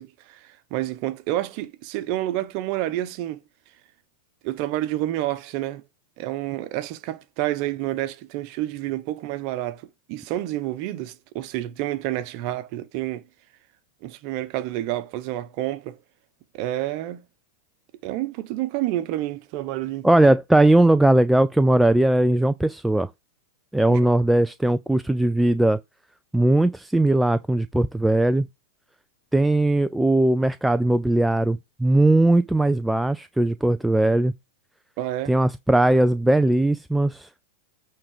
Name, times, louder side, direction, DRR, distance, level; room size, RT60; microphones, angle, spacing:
voice 1, 0.0-3.4 4.4-5.8 6.2-13.2 14.0-16.0 16.5-17.3 18.0-20.1 23.9-24.1 35.0-35.3, right 14 dB, 50° right, 1.0 m, -29 dB
voice 2, 20.0-23.1 23.7-25.8 26.3-28.5 29.3-34.3 35.3-37.3, right 1 dB, 5° right, 0.4 m, -19 dB
8.8 x 3.8 x 4.8 m
hypercardioid pair, 120°, 0 cm